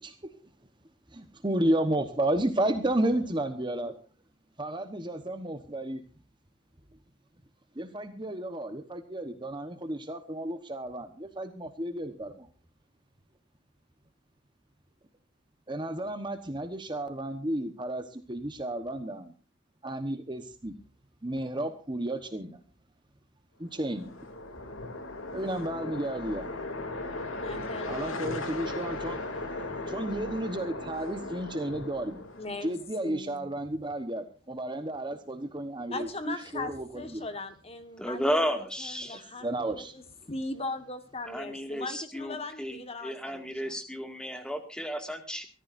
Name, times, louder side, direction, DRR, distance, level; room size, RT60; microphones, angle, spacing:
voice 1, 1.1-4.0 4.6-6.0 7.8-12.5 15.7-19.3 19.8-20.8 21.2-22.6 23.6-24.1 25.3-26.6 27.9-29.2 29.7-32.2 32.6-36.9 37.1-37.3 39.4-39.9, right 1 dB, 20° right, 8 dB, 1.1 m, -32 dB
sound 1, 23.7-32.8, left 2 dB, 70° left, 2.9 m, -37 dB
voice 2, 27.4-28.3 32.4-33.5 35.9-43.8, left 2 dB, 25° left, 9 dB, 1.5 m, -39 dB
voice 3, 38.0-39.2 41.3-45.5, equal, 5° left, 6 dB, 2.0 m, -33 dB
24.0 x 14.0 x 2.6 m, 0.35 s
head